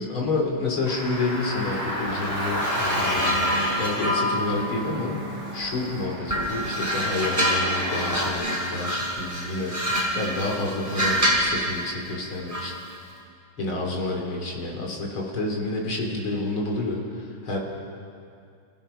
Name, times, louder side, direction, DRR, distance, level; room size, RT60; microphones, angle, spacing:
voice 1, 0.0-3.5 3.8-5.2 5.5-12.7 13.6-17.6, left 2 dB, 70° left, 0 dB, 3.7 m, -29 dB
Car, 0.8-8.3, equal, 10° left, 2.9 m, -32 dB
sound 1, 2.6-5.8 6.3-11.6 12.5-12.8, equal, 15° right, 4.7 m, -27 dB
29.5 x 15.5 x 5.7 m, 2.4 s
omnidirectional pair, 2.3 m